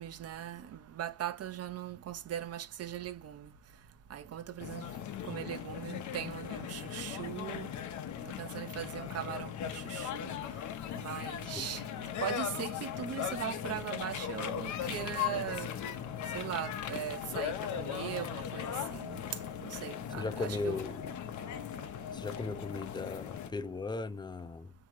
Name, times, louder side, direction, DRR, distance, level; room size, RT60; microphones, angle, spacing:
voice 1, 0.0-3.5 4.1-4.9 5.3-7.7 8.4-10.4 11.0-11.8 12.2-15.7 16.3-19.2 19.6-20.9, right 10 dB, 55° right, 0.7 m, -40 dB
sound 1, 4.6-23.5, left 9 dB, 75° left, 0.7 m, -38 dB
voice 2, 20.2-21.0 22.1-24.7, left 3 dB, 15° left, 0.5 m, -37 dB
3.7 x 2.9 x 4.5 m
cardioid pair, 90°, 30 cm